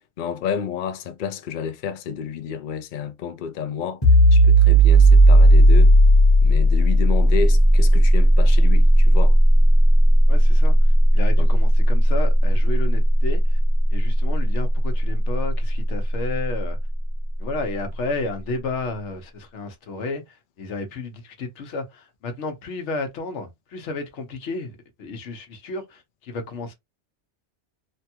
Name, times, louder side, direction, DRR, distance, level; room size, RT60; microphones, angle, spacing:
voice 1, 0.2-6.0 6.4-9.4 11.4-11.5, left 7 dB, 55° left, 0.6 m, -30 dB
sound 1, 4.0-15.4, right 1 dB, 25° left, 1.0 m, -14 dB
voice 2, 10.3-13.6 13.9-16.8 17.4-26.7, left 3 dB, 90° left, 1.1 m, -32 dB
3.3 x 2.2 x 2.8 m
omnidirectional pair, 1.2 m